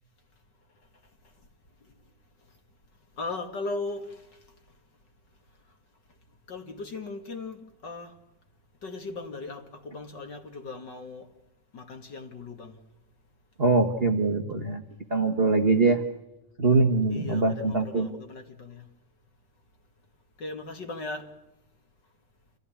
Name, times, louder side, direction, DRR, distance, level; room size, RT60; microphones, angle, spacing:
voice 1, 3.2-4.3 6.5-8.2 8.8-11.3 11.7-12.8 17.1-18.9 20.4-21.3, left 3 dB, 40° left, 2.4 m, -38 dB
voice 2, 13.6-14.8 15.1-16.0 16.6-18.1, right 3 dB, 35° right, 0.9 m, -23 dB
28.0 x 16.0 x 9.9 m
omnidirectional pair, 3.6 m